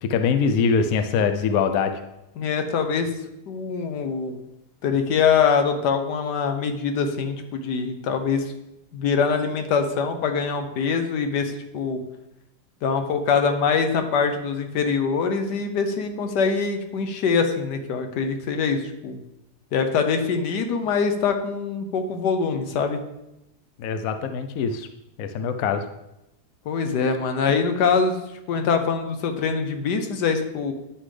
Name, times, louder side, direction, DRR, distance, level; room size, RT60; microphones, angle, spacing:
voice 1, 0.0-2.0 23.8-24.9 25.2-25.9, left 6 dB, 65° left, 8 dB, 1.0 m, -23 dB
voice 2, 2.4-3.1 3.5-4.4 4.8-8.4 8.9-12.0 12.8-19.2 19.7-23.0 26.7-28.2 28.5-30.7, left 5 dB, 80° left, 6 dB, 1.4 m, -23 dB
10.0 x 5.6 x 3.2 m, 0.89 s
omnidirectional pair, 1.8 m